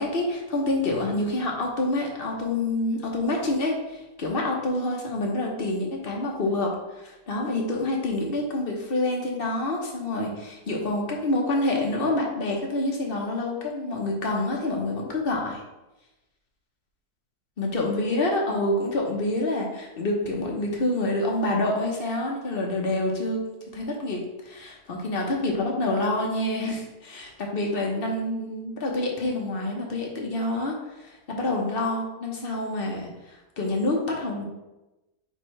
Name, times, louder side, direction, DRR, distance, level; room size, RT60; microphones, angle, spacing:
voice 1, 0.0-15.6 17.6-23.4 23.7-24.2 24.5-34.4, left 2 dB, 40° left, 0 dB, 1.0 m, -27 dB
8.9 x 3.3 x 3.2 m, 1.0 s
omnidirectional pair, 1.9 m